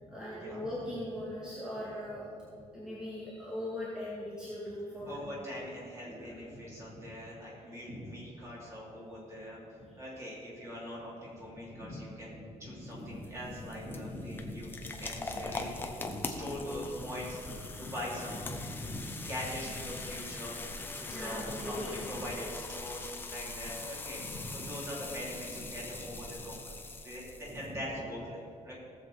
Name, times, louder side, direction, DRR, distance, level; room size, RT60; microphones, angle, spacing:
voice 1, 0.1-2.2 2.7-5.2 6.1-6.4 9.9-10.0 21.1-22.1, left 1 dB, 5° right, -10 dB, 2.5 m, -39 dB
voice 2, 5.0-9.6 10.0-20.5 20.9-28.7, equal, 25° right, -6 dB, 3.3 m, -42 dB
sound 1, 12.8-27.7, left 3 dB, 15° left, 0.8 m, -42 dB
17.5 x 7.4 x 4.2 m, 2.5 s
cardioid pair, 175°, 12 cm